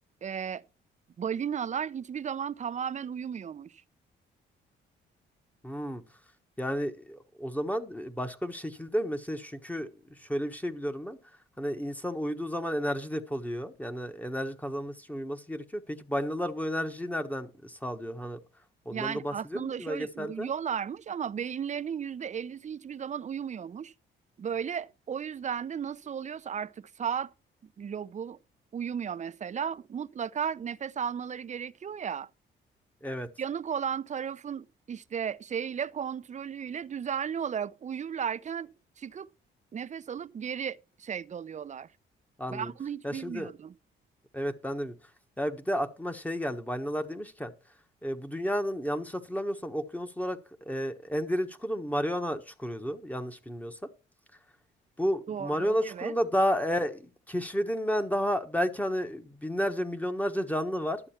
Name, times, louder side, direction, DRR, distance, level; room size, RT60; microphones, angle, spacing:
voice 1, 0.2-0.6 1.2-3.7 18.9-23.9 24.4-27.3 27.8-28.4 28.7-32.3 33.4-38.7 39.0-39.3 39.7-41.9 42.5-43.7 55.3-56.1, right 7 dB, 35° right, 0.6 m, -35 dB
voice 2, 5.6-6.0 6.6-9.9 10.2-11.2 11.6-18.4 18.8-20.5 33.0-33.3 42.4-42.7 43.0-43.5 44.3-44.9 45.4-47.5 48.0-50.4 50.7-53.8 55.0-61.0, equal, 5° left, 1.3 m, -32 dB
12.0 x 7.6 x 4.4 m
cardioid pair, 90°, 20 cm